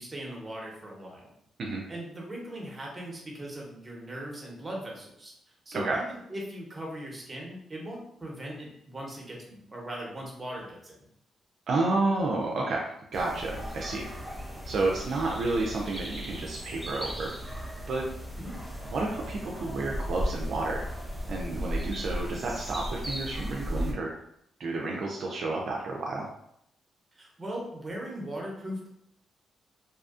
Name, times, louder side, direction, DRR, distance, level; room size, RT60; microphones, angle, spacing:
voice 1, 0.0-1.3 1.9-5.3 5.7-10.9 18.4-18.6 27.1-28.9, right 1 dB, 25° right, -2 dB, 0.9 m, -39 dB
voice 2, 11.7-14.1 14.7-18.1 18.9-20.8 21.3-24.1 24.6-26.3, right 2 dB, 65° right, -1 dB, 0.4 m, -30 dB
sound 1, 13.1-23.9, equal, ahead, 0.6 m, -36 dB
2.6 x 2.3 x 2.4 m, 0.74 s
supercardioid pair, 65°, 0 cm